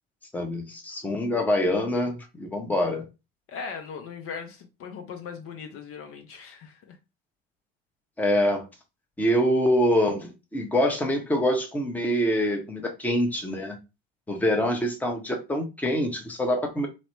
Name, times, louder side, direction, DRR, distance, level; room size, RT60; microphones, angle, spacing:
voice 1, 0.3-3.0 8.2-8.7 9.2-13.8 14.3-16.9, equal, 5° left, 0.7 m, -25 dB
voice 2, 3.5-7.0, left 6 dB, 45° left, 0.7 m, -39 dB
3.0 x 2.0 x 3.0 m
figure-of-eight pair, 65°, 31 cm